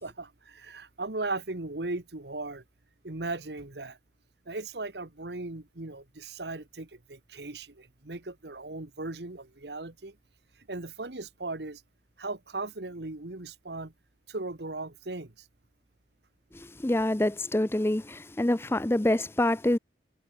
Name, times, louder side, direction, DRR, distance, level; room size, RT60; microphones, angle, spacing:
voice 1, 0.0-2.6 3.0-4.0 4.5-10.1 10.7-11.8 12.2-13.9 14.3-15.4, right 2 dB, 70° right, 1.6 m, -37 dB
voice 2, 16.5-19.8, left 1 dB, 15° left, 0.5 m, -26 dB
head